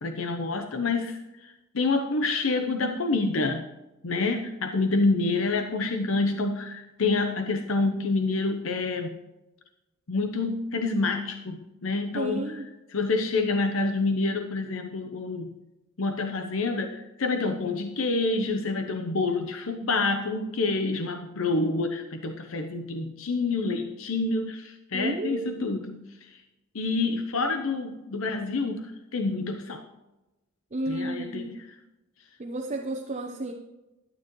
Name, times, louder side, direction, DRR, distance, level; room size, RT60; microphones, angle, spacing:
voice 1, 0.0-3.7 4.0-9.2 10.1-12.6 12.9-15.5 16.0-26.4 26.7-29.8 30.9-31.7, left 3 dB, 80° left, 6 dB, 0.8 m, -28 dB
voice 2, 12.2-12.7 24.9-25.6 30.7-31.6 32.4-33.5, right 2 dB, 35° right, 2 dB, 0.8 m, -32 dB
12.0 x 9.3 x 3.1 m, 1.0 s
head